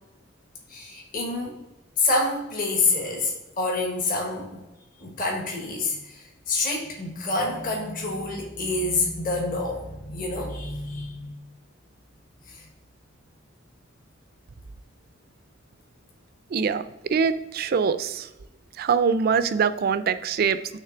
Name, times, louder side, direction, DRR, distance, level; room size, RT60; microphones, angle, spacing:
voice 1, 0.7-1.6 2.0-4.6 5.0-11.4 12.5-12.7, left 3 dB, 45° left, -1 dB, 1.3 m, -27 dB
voice 2, 16.5-18.3 18.8-20.8, right 6 dB, 50° right, 13 dB, 0.4 m, -24 dB
6.6 x 3.2 x 5.7 m, 0.98 s
head